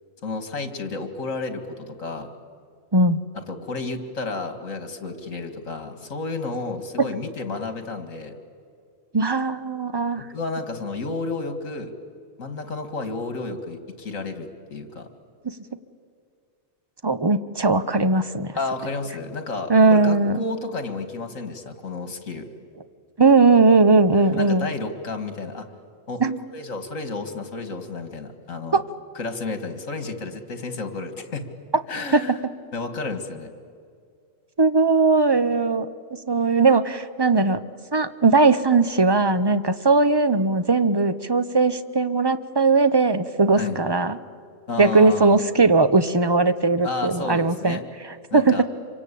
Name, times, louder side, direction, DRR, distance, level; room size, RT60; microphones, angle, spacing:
voice 1, 0.2-2.3 3.3-8.4 10.2-11.9 12.4-15.1 18.5-22.5 24.3-25.7 26.1-26.2 26.5-28.8 29.1-31.4 31.9-32.4 32.7-33.5 43.6-43.8 44.7-45.4 46.8-47.8 48.3-48.6, left 3 dB, 75° left, 8 dB, 2.4 m, -31 dB
voice 2, 2.9-3.2 9.1-10.2 17.0-18.5 19.7-20.4 23.2-24.7 26.2-26.4 28.7-28.8 32.1-32.2 34.6-35.9 36.3-37.6 37.9-44.2 44.8-47.8 48.3-48.6, right 3 dB, 25° right, 11 dB, 0.7 m, -19 dB
26.5 x 24.5 x 8.4 m, 2.3 s
omnidirectional pair, 1.4 m